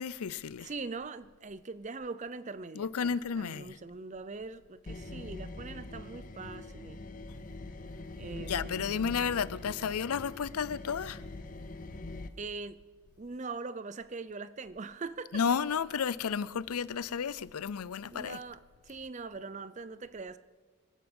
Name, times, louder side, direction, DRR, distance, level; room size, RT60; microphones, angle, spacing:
voice 1, 0.0-0.7 2.7-3.8 8.5-11.2 15.3-18.4, left 6 dB, 90° left, 0.5 m, -32 dB
voice 2, 0.6-7.0 8.1-9.0 12.4-12.8 13.2-15.4 18.1-20.4, right 4 dB, 35° right, 0.5 m, -42 dB
sound 1, 4.9-12.3, left 2 dB, 35° left, 0.7 m, -43 dB
25.5 x 9.4 x 5.4 m
head